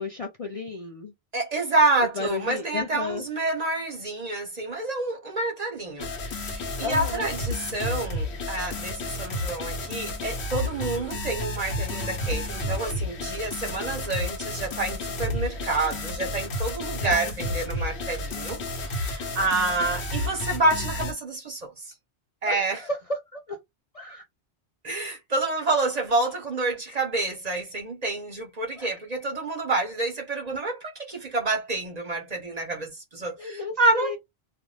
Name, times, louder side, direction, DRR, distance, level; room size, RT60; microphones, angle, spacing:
voice 1, 0.0-1.1 2.2-3.3 6.8-7.2 17.0-17.6 22.4-23.6 23.9-24.2 28.8-29.0 33.4-34.2, left 3 dB, 45° left, 0.5 m, -33 dB
voice 2, 1.3-21.9 22.4-22.8 24.8-34.2, right 2 dB, 45° right, 0.6 m, -28 dB
sound 1, 6.0-21.1, left 1 dB, 75° left, 1.1 m, -31 dB
2.5 x 2.1 x 3.1 m
omnidirectional pair, 1.1 m